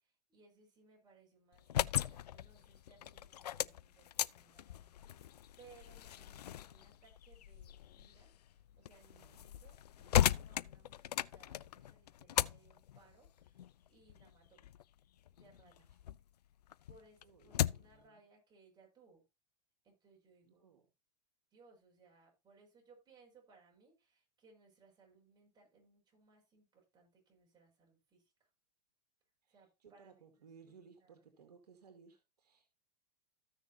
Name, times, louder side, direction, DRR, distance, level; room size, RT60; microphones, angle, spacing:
voice 1, 0.0-1.7 1.9-5.1 5.6-14.6 15.3-15.9 16.9-19.2 19.8-20.7 21.5-28.5 29.5-31.3, right 4 dB, 20° right, 6.0 m, -66 dB
sound 1, 1.5-16.2 16.6-18.0, left 11 dB, 80° left, 0.4 m, -38 dB
voice 2, 17.2-18.2 20.4-20.9 29.4-32.7, right 6 dB, 75° right, 2.3 m, -61 dB
14.5 x 6.4 x 2.8 m
hypercardioid pair, 110°, 20 cm